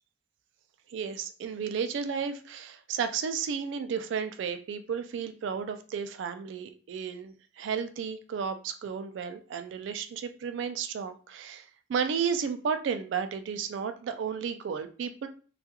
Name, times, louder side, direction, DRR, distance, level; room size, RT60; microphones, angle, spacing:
voice 1, 0.9-15.3, right 6 dB, 65° right, 8 dB, 0.3 m, -33 dB
2.3 x 2.2 x 2.8 m, 0.38 s
head